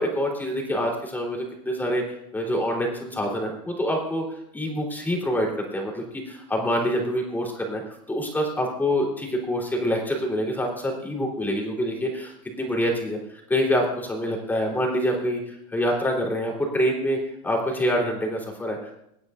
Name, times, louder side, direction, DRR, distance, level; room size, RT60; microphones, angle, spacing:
voice 1, 0.0-2.0 2.3-7.8 8.1-17.2 17.4-18.9, equal, 10° left, 0 dB, 3.7 m, -26 dB
26.0 x 9.4 x 2.6 m, 0.77 s
supercardioid pair, 125°, 18 cm